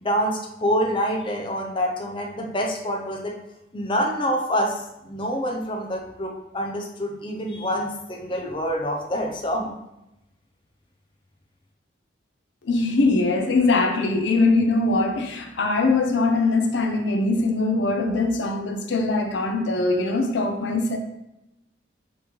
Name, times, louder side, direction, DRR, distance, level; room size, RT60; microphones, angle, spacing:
voice 1, 0.0-3.3 3.7-9.7, equal, 30° left, 1 dB, 0.5 m, -26 dB
voice 2, 12.7-21.0, left 3 dB, 80° left, 4 dB, 0.5 m, -22 dB
5.1 x 3.1 x 3.1 m, 0.89 s
head